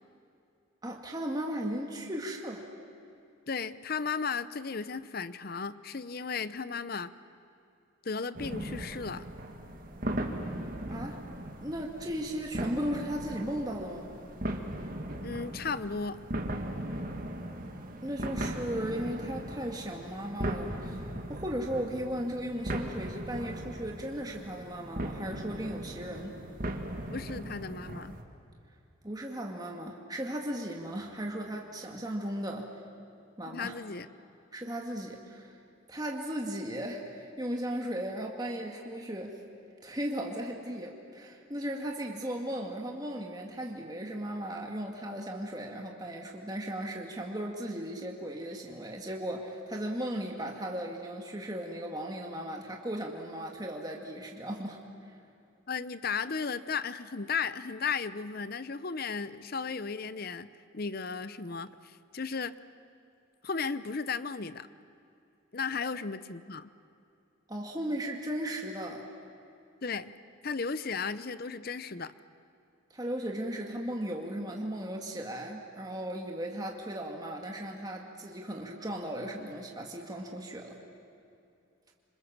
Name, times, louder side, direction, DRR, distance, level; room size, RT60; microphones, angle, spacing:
voice 1, 0.8-2.7 10.9-11.2 11.6-14.1 18.0-21.0 21.3-26.4 29.0-32.7 33.4-33.7 34.5-35.6 35.9-39.4 39.8-54.8 67.5-69.0 72.9-80.8, right 1 dB, 20° right, 0 dB, 1.8 m, -36 dB
voice 2, 3.5-7.1 8.0-9.2 15.2-16.2 27.1-28.2 33.5-34.1 55.7-62.6 63.4-64.7 65.5-66.7 69.8-70.1 70.4-72.1, left 5 dB, 45° left, 14 dB, 0.7 m, -35 dB
sound 1, 8.3-28.2, right 1 dB, 40° right, 2.0 m, -38 dB
27.0 x 26.5 x 7.3 m, 2.6 s
head